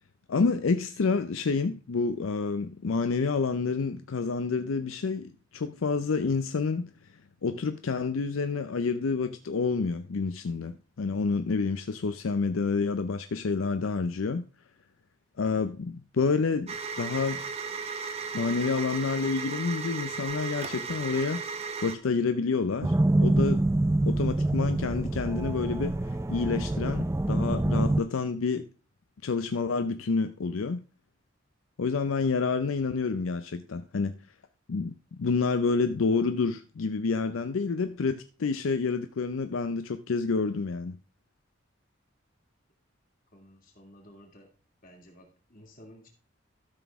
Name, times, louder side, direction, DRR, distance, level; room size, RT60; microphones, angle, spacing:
voice 1, 0.3-6.9 7.4-14.4 15.4-17.4 18.3-21.4 21.8-23.6 24.1-26.0 26.3-28.7 29.2-30.8 31.8-34.1 34.7-41.0, left 4 dB, 80° left, 0.5 m, -28 dB
sound 1, 16.7-21.9, right 5 dB, 30° right, 0.8 m, -35 dB
sound 2, 22.8-28.0, right 2 dB, 15° right, 0.3 m, -26 dB
voice 2, 43.3-44.5 44.8-46.1, equal, 45° left, 2.6 m, -53 dB
13.0 x 6.1 x 3.5 m
head